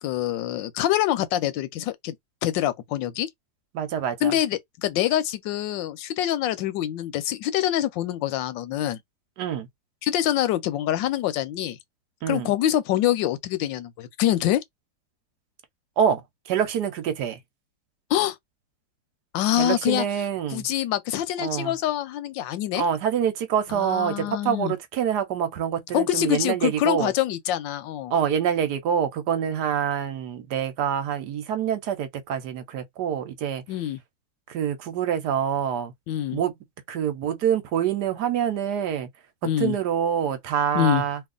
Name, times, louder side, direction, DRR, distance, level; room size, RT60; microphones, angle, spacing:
voice 1, 0.0-2.2 2.4-3.3 4.2-9.0 10.0-11.8 12.3-14.6 18.1-18.4 19.3-20.0 20.5-22.8 23.7-24.7 25.9-28.1 33.7-34.0 36.1-36.4 39.4-39.8 40.7-41.0, left 12 dB, 85° left, 1.3 m, -25 dB
voice 2, 3.7-4.4 9.4-9.7 12.2-12.5 16.0-17.4 19.6-20.7 21.4-21.7 22.7-27.1 28.1-33.6 34.5-35.9 36.3-36.5 36.9-39.1 39.4-41.2, right 8 dB, 70° right, 1.2 m, -26 dB
3.1 x 2.4 x 3.7 m
omnidirectional pair, 2.0 m